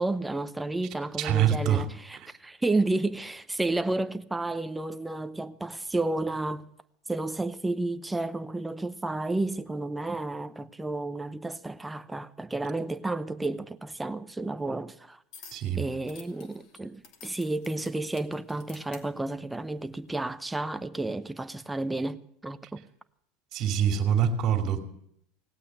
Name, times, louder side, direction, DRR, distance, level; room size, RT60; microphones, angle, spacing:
voice 1, 0.0-6.7 7.1-15.2 15.8-22.8, right 2 dB, 10° right, 0.8 m, -31 dB
voice 2, 1.2-1.9 2.2-2.3 15.5-15.9 23.5-24.8, right 9 dB, 50° right, 2.5 m, -25 dB
sound 1, 15.3-15.7 16.1-19.0 19.8-20.0, left 6 dB, 60° left, 2.6 m, -50 dB
18.0 x 8.6 x 9.0 m
hypercardioid pair, 95°, 0 cm